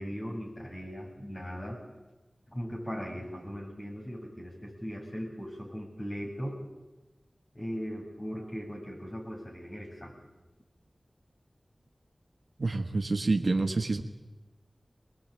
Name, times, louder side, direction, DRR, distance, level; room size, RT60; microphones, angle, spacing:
voice 1, 0.0-1.8 2.5-6.6 7.5-10.3, equal, 45° left, -1 dB, 7.7 m, -38 dB
voice 2, 12.6-14.0, right 3 dB, 70° right, 5 dB, 1.3 m, -27 dB
22.5 x 20.5 x 9.0 m, 1.1 s
wide cardioid pair, 65°, 0 cm